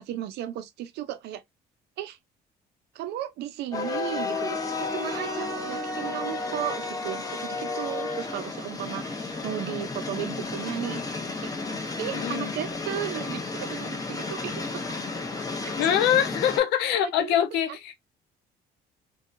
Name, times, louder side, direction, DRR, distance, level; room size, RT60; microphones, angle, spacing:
voice 1, 0.0-1.4 2.0-2.2 2.9-11.0 11.4-11.5 12.0-15.0 15.7-15.8 17.2-17.4, right 12 dB, 80° right, 0.5 m, -35 dB
sound 1, 3.7-16.6, left 3 dB, 20° left, 0.8 m, -32 dB
voice 2, 12.1-12.6 15.8-17.9, left 10 dB, 85° left, 0.6 m, -24 dB
2.7 x 2.3 x 2.4 m
cardioid pair, 110°, 17 cm